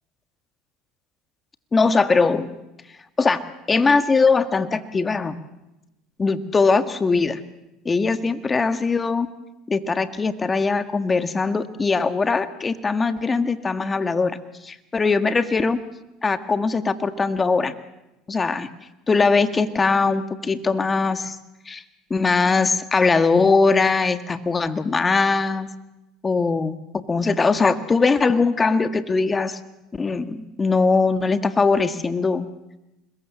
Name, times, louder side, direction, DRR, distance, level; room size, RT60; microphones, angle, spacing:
voice 1, 1.7-2.5 3.2-3.4 3.7-5.3 6.2-7.4 7.9-9.3 9.7-14.4 14.6-15.8 16.2-17.7 18.3-18.7 19.1-21.4 21.7-21.8 22.1-25.7 26.2-29.6 29.9-32.5, left 4 dB, 25° left, 9 dB, 1.8 m, -21 dB
26.0 x 21.5 x 7.4 m, 0.96 s
hypercardioid pair, 80°, 0 cm